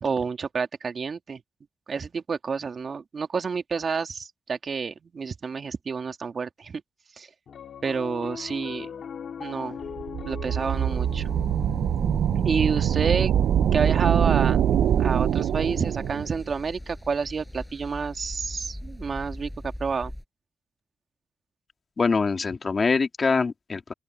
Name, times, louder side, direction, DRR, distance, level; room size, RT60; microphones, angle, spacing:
voice 1, 0.0-1.4 1.9-6.8 7.2-7.3 7.8-9.0 9.4-9.8 10.2-11.3 12.4-13.3 13.7-14.7 15.0-19.5 19.8-20.1, right 5 dB, 55° right, 2.1 m, -29 dB
Piano, 7.5-18.0, left 7 dB, 65° left, 2.2 m, -42 dB
sound 1, 9.9-16.4, right 10 dB, 80° right, 0.4 m, -24 dB
sound 2, 10.6-20.2, equal, 5° left, 6.6 m, -38 dB
voice 2, 22.0-23.9, left 4 dB, 45° left, 2.0 m, -24 dB
open air
cardioid pair, 60°, 0 cm